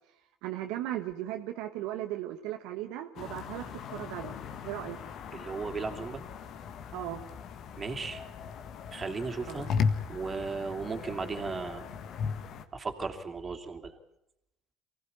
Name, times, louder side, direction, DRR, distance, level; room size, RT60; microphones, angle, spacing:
voice 1, 0.4-4.4 4.6-5.0 6.9-7.2 9.5-9.7, right 13 dB, 70° right, 5 dB, 1.3 m, -37 dB
sound 1, 3.2-12.7, left 6 dB, 55° left, 1.6 m, -37 dB
voice 2, 5.3-6.2 7.8-8.2 8.9-9.7 10.1-11.9 12.7-14.0, right 4 dB, 30° right, 5 dB, 3.0 m, -36 dB
24.0 x 16.0 x 9.6 m, 0.82 s
hypercardioid pair, 70°, 0 cm